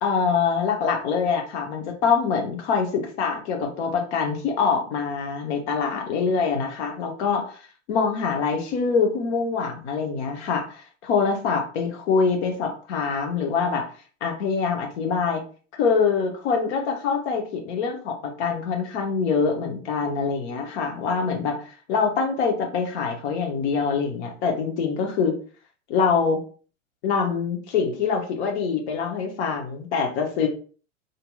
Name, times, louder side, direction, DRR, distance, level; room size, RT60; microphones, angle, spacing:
voice 1, 0.0-13.9 14.2-15.4 15.7-25.3 25.9-26.4 27.0-30.5, left 5 dB, 60° left, 2 dB, 0.9 m, -24 dB
2.8 x 2.6 x 2.3 m, 0.41 s
hypercardioid pair, 105°, 38 cm